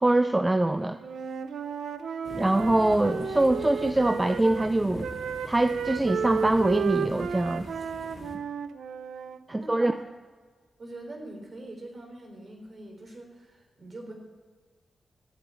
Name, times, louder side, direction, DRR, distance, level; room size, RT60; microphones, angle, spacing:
voice 1, 0.0-1.0 2.3-5.1 5.5-7.7 9.5-9.9, right 2 dB, 20° right, 10 dB, 0.5 m, -24 dB
Wind instrument woodwind instrument, 1.0-4.7 5.0-9.4, right 6 dB, 90° right, 0.6 m, -33 dB
sound 1, 2.2-8.3, left 2 dB, 75° left, 2.2 m, -43 dB
voice 2, 9.5-10.0 10.8-14.1, right 1 dB, 50° right, 2 dB, 3.7 m, -44 dB
14.0 x 8.5 x 7.3 m, 1.5 s
cardioid pair, 70°, 0 cm